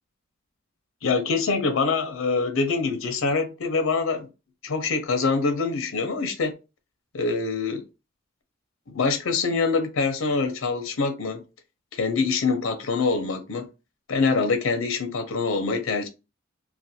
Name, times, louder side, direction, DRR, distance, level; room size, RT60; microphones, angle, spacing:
voice 1, 1.0-4.3 4.6-6.5 7.1-7.8 8.9-11.4 11.9-13.7 14.1-16.1, left 4 dB, 85° left, 0.5 m, -25 dB
2.4 x 2.1 x 2.7 m
head